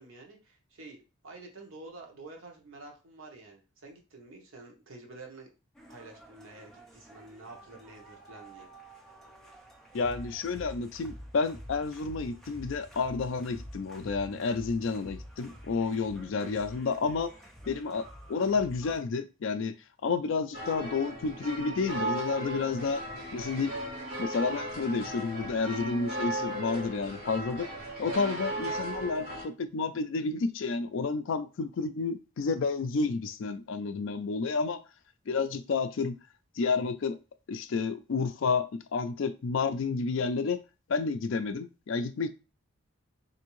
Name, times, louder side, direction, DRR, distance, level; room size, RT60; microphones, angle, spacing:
voice 1, 0.0-5.5 5.9-8.7, right 2 dB, 65° right, 0.9 m, -49 dB
sound 1, 5.7-19.0, equal, ahead, 0.4 m, -48 dB
voice 2, 9.9-17.3 17.7-19.8 20.0-23.0 23.3-23.7 24.2-27.7 28.0-34.8 35.3-36.2 36.6-37.2 37.5-40.6 40.9-42.3, left 4 dB, 60° left, 0.3 m, -30 dB
sound 2, 20.5-29.5, right 1 dB, 45° right, 1.5 m, -36 dB
3.4 x 2.6 x 3.0 m
head